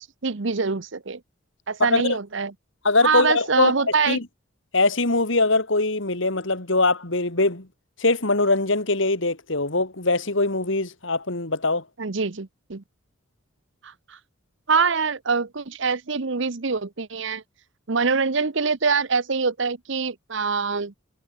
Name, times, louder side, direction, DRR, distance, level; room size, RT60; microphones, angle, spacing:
voice 1, 0.2-1.2 1.7-2.5 3.0-4.2 12.0-12.8 13.8-14.2 14.7-17.4 17.9-20.9, right 5 dB, 60° right, 0.9 m, -24 dB
voice 2, 1.8-2.2 2.8-4.2 4.7-7.7 8.0-11.8, left 2 dB, 60° left, 2.7 m, -22 dB
head